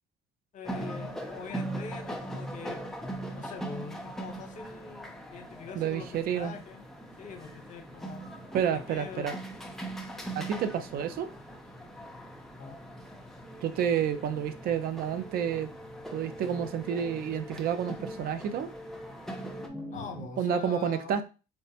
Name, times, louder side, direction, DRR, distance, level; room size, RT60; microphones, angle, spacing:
voice 1, 0.5-2.8 3.3-6.8 7.2-8.3 8.6-9.4 12.6-12.8 19.9-21.2, left 5 dB, 50° left, 0.8 m, -43 dB
sound 1, 0.6-19.7, right 1 dB, ahead, 0.5 m, -41 dB
sound 2, 1.0-20.3, left 1 dB, 30° right, 1.2 m, -53 dB
voice 2, 5.7-6.6 8.5-9.4 10.3-11.3 13.6-15.7 16.1-18.7 20.4-21.2, right 8 dB, 60° right, 0.5 m, -30 dB
4.5 x 2.0 x 2.8 m
cardioid pair, 110°, 17 cm